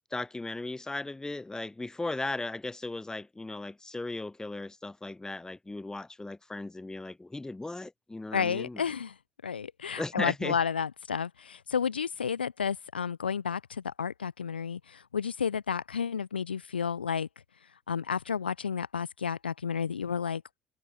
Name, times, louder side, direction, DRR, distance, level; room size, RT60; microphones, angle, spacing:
voice 1, 0.1-8.8 9.9-10.6, left 2 dB, 10° left, 0.7 m, -36 dB
voice 2, 8.3-9.2 9.4-17.3 17.9-20.4, left 6 dB, 85° left, 0.4 m, -31 dB
figure-of-eight pair, 55°, 5 cm